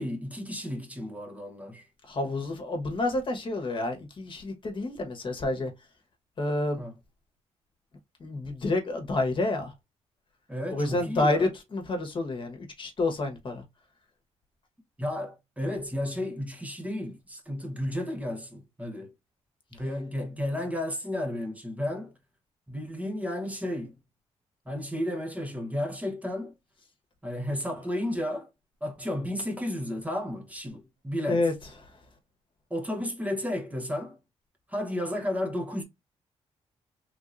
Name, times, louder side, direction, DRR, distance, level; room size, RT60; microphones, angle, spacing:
voice 1, 0.0-1.9 6.8-6.9 10.5-11.5 15.0-19.1 19.7-22.1 22.7-24.0 24.7-26.5 27.2-28.5 28.8-31.4 32.7-34.2 34.7-35.8, left 1 dB, 10° right, 0.9 m, -33 dB
voice 2, 2.1-5.7 6.4-6.8 8.2-9.7 10.7-13.6 31.3-31.5, left 2 dB, 45° left, 1.2 m, -29 dB
3.4 x 2.7 x 2.5 m
cardioid pair, 80°, 11 cm